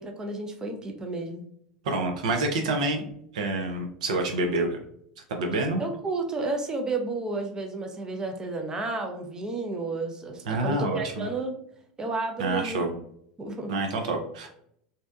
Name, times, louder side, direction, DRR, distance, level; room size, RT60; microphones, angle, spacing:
voice 1, 0.0-1.4 5.8-11.6 12.0-12.9 13.4-13.8, right 3 dB, 20° right, 3 dB, 0.5 m, -32 dB
voice 2, 1.8-3.1 3.3-4.8 5.3-5.8 10.5-11.3 12.4-12.9 13.7-14.5, right 2 dB, 70° right, 4 dB, 0.5 m, -27 dB
2.7 x 2.1 x 2.4 m, 0.68 s
hypercardioid pair, 85°, 4 cm